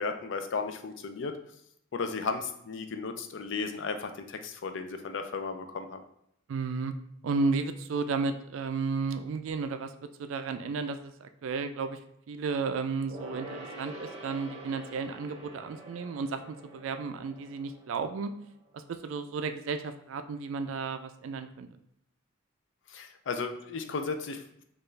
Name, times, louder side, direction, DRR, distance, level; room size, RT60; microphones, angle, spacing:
voice 1, 0.0-1.4 1.9-6.0 22.9-24.6, left 4 dB, 60° left, 7 dB, 0.4 m, -35 dB
voice 2, 6.5-6.9 7.2-9.9 10.2-12.0 12.3-18.3 18.9-21.7, right 4 dB, 70° right, 9 dB, 0.3 m, -33 dB
Gong, 13.1-19.0 19.3-19.4, right 1 dB, 30° right, 0.8 m, -46 dB
4.4 x 2.4 x 3.2 m, 0.72 s
head